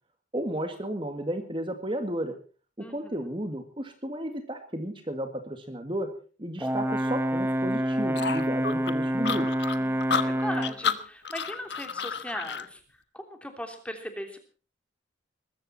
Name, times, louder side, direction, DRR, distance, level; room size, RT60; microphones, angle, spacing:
voice 1, 0.3-2.4 2.8-6.1 6.4-9.5, right 1 dB, 25° right, 6 dB, 2.0 m, -33 dB
voice 2, 2.8-3.2 9.7-12.8 13.1-14.4, equal, 5° left, 6 dB, 3.1 m, -38 dB
Brass instrument, 6.6-10.8, equal, 10° right, 1.1 m, -27 dB
sound 1, 8.1-12.7, left 6 dB, 65° left, 1.3 m, -31 dB
21.0 x 15.0 x 4.3 m, 0.38 s
head